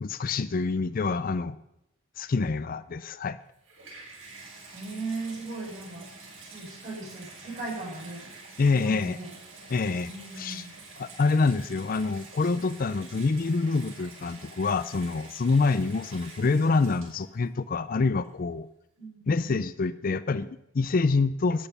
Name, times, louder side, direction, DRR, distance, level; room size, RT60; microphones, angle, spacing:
voice 1, 0.0-1.6 2.2-3.4 8.6-9.2 9.7-10.1 10.4-10.6 11.0-18.7 19.3-21.7, left 4 dB, 45° left, 15 dB, 0.4 m, -26 dB
Water tap faucet / Bathtub (filling or washing), 3.4-17.5 18.2-18.3, right 3 dB, 85° right, 6.6 m, -47 dB
voice 2, 4.7-6.1 6.5-8.3 8.6-9.3 10.0-10.7 19.0-19.6, right 3 dB, 35° right, -4 dB, 6.6 m, -38 dB
14.0 x 10.5 x 5.5 m, 0.84 s
head